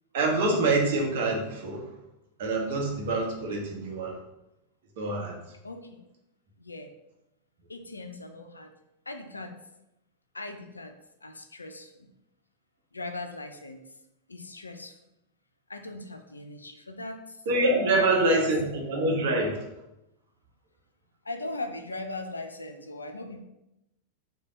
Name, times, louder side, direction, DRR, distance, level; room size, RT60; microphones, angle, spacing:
voice 1, 0.1-1.9 2.4-4.2 5.0-5.4 17.5-19.6, right 2 dB, 55° right, 0 dB, 0.8 m, -25 dB
voice 2, 5.6-6.0 6.6-6.9 7.7-8.7 9.1-9.5 10.3-11.0 11.2-12.1 12.9-13.8 14.3-15.0 15.7-17.4 17.9-18.4 21.2-23.4, left 2 dB, 80° left, 6 dB, 0.3 m, -39 dB
3.3 x 2.2 x 3.7 m, 0.90 s
figure-of-eight pair, 90°, 0 cm